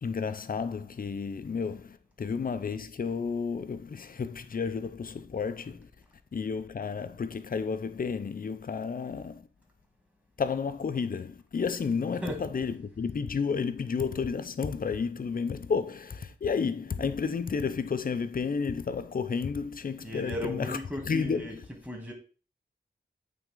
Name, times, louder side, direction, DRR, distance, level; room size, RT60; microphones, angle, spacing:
voice 1, 0.0-5.9 6.3-9.5 10.4-20.8 21.0-21.6, left 5 dB, 50° left, 0.7 m, -31 dB
voice 2, 20.0-21.5 21.9-22.1, equal, 5° right, 2.3 m, -35 dB
9.0 x 3.8 x 3.8 m
wide cardioid pair, 95°, 19 cm